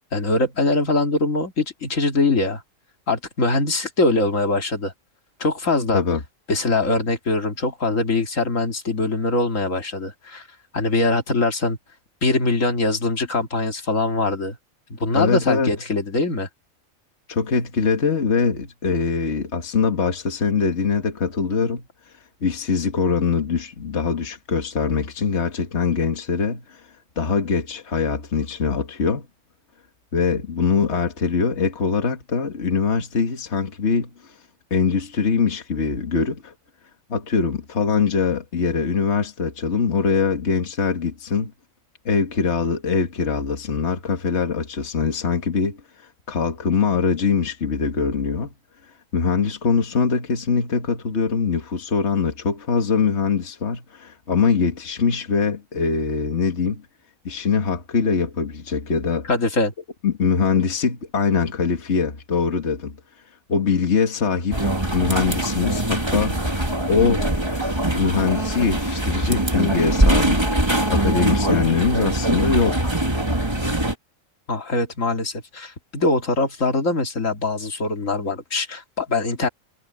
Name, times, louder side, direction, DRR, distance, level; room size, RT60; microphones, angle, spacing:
voice 1, 0.1-2.6 3.1-4.9 5.4-6.0 6.5-10.5 10.7-11.8 12.2-14.6 14.9-16.5 59.3-59.7 74.5-79.5, left 3 dB, 70° left, 2.7 m, -22 dB
voice 2, 15.1-15.7 17.3-21.9 22.4-26.8 27.2-29.3 30.1-34.3 34.7-36.5 37.1-41.5 42.1-48.5 49.1-56.8 57.3-59.3 60.0-63.0 63.5-66.4 66.9-67.3 67.9-70.5 70.9-72.9, left 5 dB, 55° left, 2.0 m, -22 dB
sound 1, 64.5-73.9, right 1 dB, 20° right, 2.4 m, -22 dB
omnidirectional pair, 1.4 m